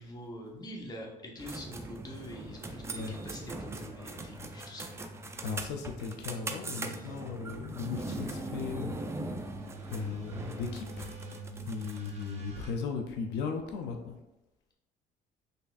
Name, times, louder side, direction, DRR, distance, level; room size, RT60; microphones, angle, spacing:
voice 1, 0.0-5.0 7.0-7.1, equal, 25° left, -1 dB, 0.8 m, -45 dB
sound 1, 1.4-12.2, right 2 dB, 15° right, 0.3 m, -41 dB
sound 2, 1.6-12.7, right 1 dB, 40° right, 0.8 m, -48 dB
voice 2, 5.4-8.9 9.9-11.1 11.6-14.2, left 5 dB, 85° left, 4 dB, 0.5 m, -37 dB
4.1 x 3.3 x 2.4 m, 0.94 s
cardioid pair, 110°, 17 cm